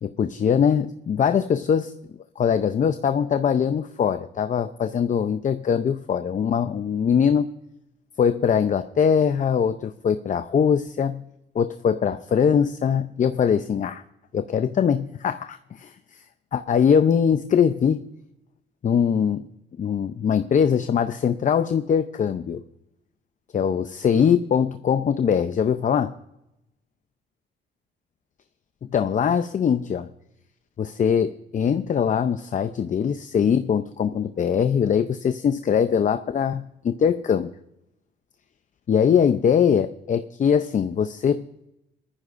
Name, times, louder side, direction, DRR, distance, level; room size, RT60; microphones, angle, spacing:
voice 1, 0.0-1.9 2.4-7.5 8.2-11.3 11.5-14.0 14.3-15.9 16.5-18.0 18.8-19.5 19.8-22.6 23.5-26.1 28.9-30.1 30.8-37.5 38.9-41.4, left 7 dB, 40° left, 10 dB, 0.6 m, -22 dB
19.0 x 14.0 x 2.5 m, 0.88 s
cardioid pair, 90°, 20 cm